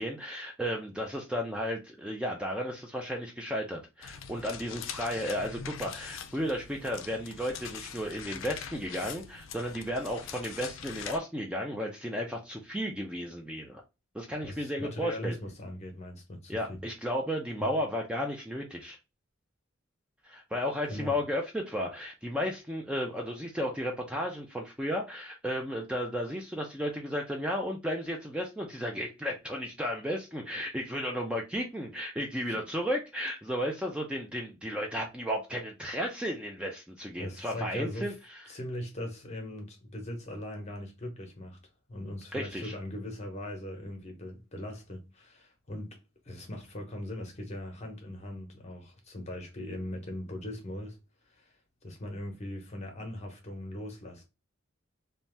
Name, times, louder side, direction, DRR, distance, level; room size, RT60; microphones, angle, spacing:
voice 1, 0.0-13.8 14.1-15.4 16.5-19.0 20.2-38.5 42.3-42.7, equal, 5° right, 0.4 m, -34 dB
sound 1, 4.0-11.2, left 7 dB, 75° left, 0.4 m, -43 dB
voice 2, 14.4-16.8 17.6-17.8 20.9-21.1 32.5-32.6 37.2-38.2 38.5-41.6 41.9-46.0 46.2-51.0 51.3-51.5 51.8-54.2, left 1 dB, 35° left, 0.9 m, -40 dB
2.7 x 2.2 x 3.2 m
head